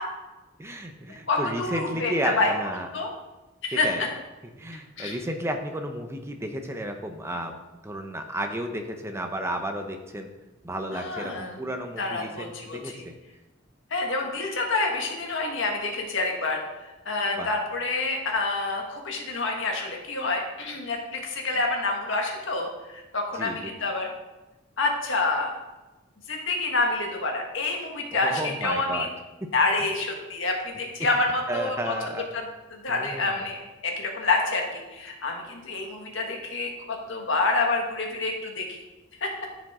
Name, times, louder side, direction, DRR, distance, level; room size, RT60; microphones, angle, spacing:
voice 1, 0.6-2.9 3.8-4.0 4.6-7.5 7.8-10.3 10.6-13.1 17.4-17.5 23.4-23.7 28.2-29.1 31.5-32.3 32.9-33.4, right 1 dB, 15° right, 5 dB, 0.6 m, -32 dB
voice 2, 1.3-2.5 2.9-3.1 3.6-4.1 5.0-5.1 10.9-11.6 12.0-13.0 13.9-16.6 17.0-24.1 24.8-25.5 26.3-29.1 29.5-31.9 32.3-32.5 32.8-38.8 39.2-39.3, left 3 dB, 65° left, 1 dB, 1.6 m, -27 dB
13.0 x 5.1 x 3.7 m, 1.1 s
head